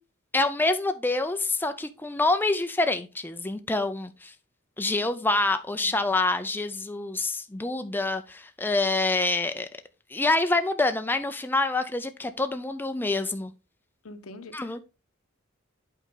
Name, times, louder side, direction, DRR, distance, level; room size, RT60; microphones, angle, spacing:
voice 1, 0.3-4.3 4.8-9.7 10.1-13.5 14.5-14.8, left 2 dB, 10° left, 0.5 m, -26 dB
voice 2, 14.0-14.8, left 2 dB, 80° left, 1.0 m, -45 dB
8.2 x 4.8 x 3.8 m
head